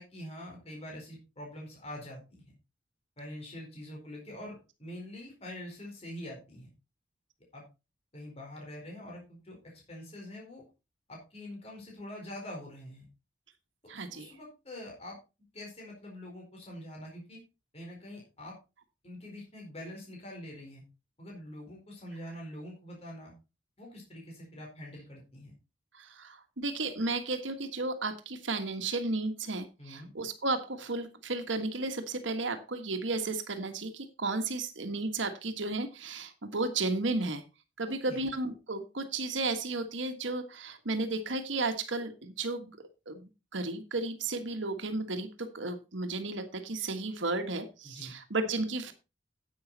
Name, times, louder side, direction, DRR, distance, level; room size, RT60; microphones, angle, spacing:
voice 1, 0.0-2.5 3.2-6.7 7.5-7.6 8.1-10.6 11.1-13.1 13.8-15.2 15.5-17.4 17.7-18.6 19.0-20.8 21.2-23.3 23.8-25.5 29.8-30.1 37.9-38.3 47.8-48.1, left 1 dB, 35° left, -1 dB, 4.4 m, -45 dB
voice 2, 13.9-14.3 25.9-37.4 37.8-42.7 43.1-43.2 43.5-48.9, right 3 dB, 80° right, 7 dB, 1.5 m, -33 dB
10.5 x 8.6 x 4.1 m, 0.29 s
head